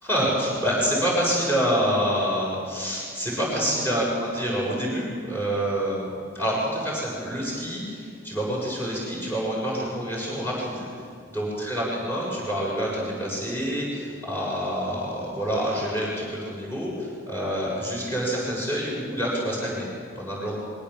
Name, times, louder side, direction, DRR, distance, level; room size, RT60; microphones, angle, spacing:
voice 1, 0.0-10.9 11.3-19.9 20.2-20.6, equal, 10° left, -5 dB, 7.1 m, -27 dB
23.0 x 17.0 x 7.3 m, 2.2 s
head